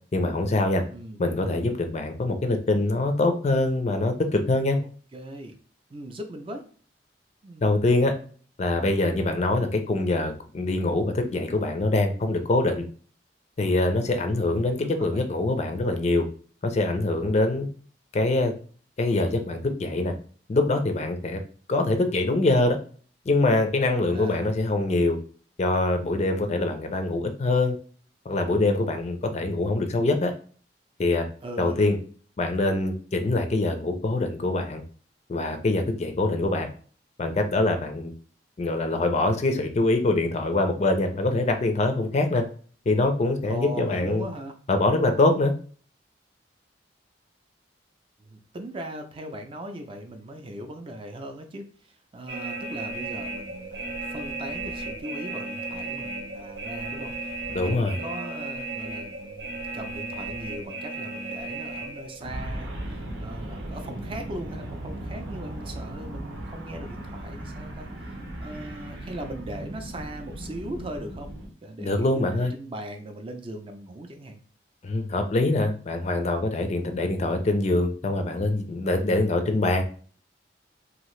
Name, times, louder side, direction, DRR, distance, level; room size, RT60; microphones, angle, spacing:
voice 1, 0.1-0.8 1.2-4.8 7.6-8.1 8.6-12.8 13.6-16.3 16.6-17.7 18.1-18.5 19.0-20.1 20.5-21.4 21.7-22.8 23.3-25.2 25.6-27.8 28.3-30.3 31.0-31.3 31.6-32.0 32.4-34.8 35.3-36.7 37.2-38.1 38.6-42.4 42.9-44.3 44.7-45.5 57.5-58.0 71.8-72.5 74.8-79.8, left 2 dB, 40° left, 6 dB, 0.4 m, -24 dB
voice 2, 4.7-5.5 5.9-6.6 7.4-7.7 14.3-15.2 24.0-24.5 31.4-31.9 43.4-44.5 48.2-71.3 71.6-74.4, right 1 dB, 30° right, 5 dB, 0.4 m, -39 dB
sound 1, 52.3-71.5, right 2 dB, 85° right, 0.8 m, -36 dB
2.8 x 2.4 x 3.1 m, 0.42 s
head